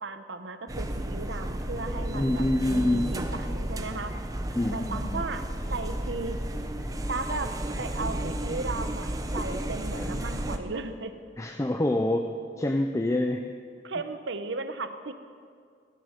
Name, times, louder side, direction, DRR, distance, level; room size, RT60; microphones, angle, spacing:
voice 1, 0.0-4.1 4.7-5.4 5.7-6.4 6.8-11.1 13.8-15.1, right 3 dB, 75° right, 10 dB, 0.9 m, -36 dB
sound 1, 0.7-10.6, right 1 dB, 20° right, 0.8 m, -32 dB
voice 2, 2.1-3.2 4.6-5.2 9.9-10.2 11.4-13.5, left 1 dB, 15° left, 5 dB, 0.5 m, -27 dB
18.0 x 11.5 x 5.1 m, 2.2 s
head